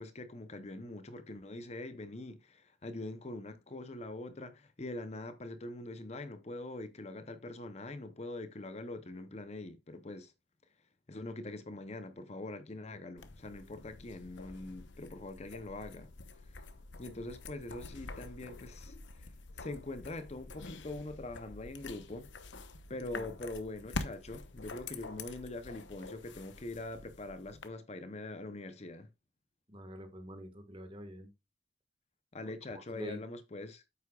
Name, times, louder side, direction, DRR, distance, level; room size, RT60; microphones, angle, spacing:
voice 1, 0.0-10.3 11.1-16.1 16.5-16.6 17.0-19.3 19.5-22.3 22.9-29.1 32.3-33.8, left 2 dB, 35° left, 0.7 m, -43 dB
sound 1, 13.2-27.7, left 3 dB, 85° left, 1.0 m, -47 dB
voice 2, 29.7-31.3 32.7-33.2, equal, 30° right, 1.6 m, -46 dB
9.5 x 8.3 x 2.4 m
head